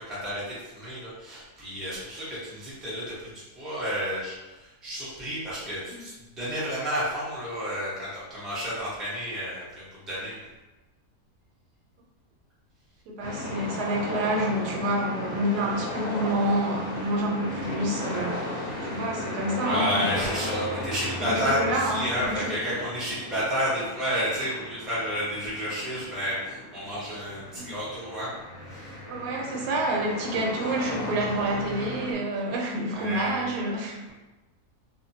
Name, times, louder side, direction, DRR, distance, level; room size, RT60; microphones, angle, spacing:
voice 1, 0.0-10.4 19.6-28.3 28.6-29.0 32.9-33.5, equal, ahead, -10 dB, 0.6 m, -31 dB
voice 2, 13.1-20.3 21.2-22.5 27.6-27.7 29.1-34.0, right 1 dB, 85° right, -1 dB, 1.1 m, -28 dB
sound 1, 13.2-32.1, left 1 dB, 65° left, 1.0 m, -35 dB
2.9 x 2.1 x 2.7 m, 1.1 s
omnidirectional pair, 1.7 m